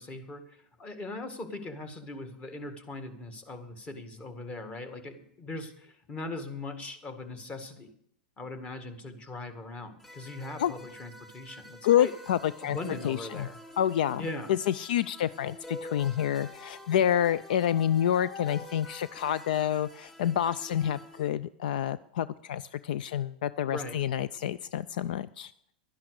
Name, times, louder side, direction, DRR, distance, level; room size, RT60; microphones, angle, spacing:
voice 1, 0.0-7.9 8.4-12.1 12.6-13.6 14.2-14.5 23.7-24.0, left 2 dB, 25° left, 8 dB, 2.0 m, -40 dB
sound 1, 10.0-21.3, left 2 dB, 5° left, 2.7 m, -47 dB
voice 2, 11.8-12.8 13.0-13.5 13.8-25.5, left 10 dB, 70° left, 17 dB, 0.4 m, -28 dB
12.0 x 10.5 x 6.5 m, 0.71 s
hypercardioid pair, 115°, 5 cm